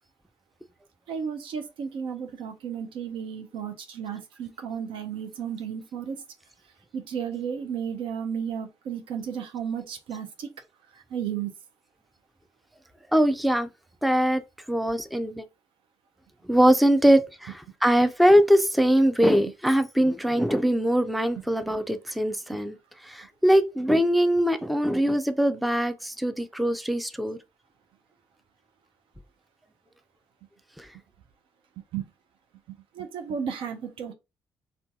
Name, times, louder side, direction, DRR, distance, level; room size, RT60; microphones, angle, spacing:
voice 1, 1.1-6.2 6.9-10.5 11.1-11.5 31.9-32.0 33.0-34.1, right 7 dB, 65° right, 0.6 m, -33 dB
voice 2, 13.1-13.7 14.0-14.4 14.7-15.4 16.4-22.8 23.0-27.4 30.8-30.9, equal, ahead, 0.5 m, -22 dB
2.6 x 2.3 x 3.6 m
hypercardioid pair, 45°, 9 cm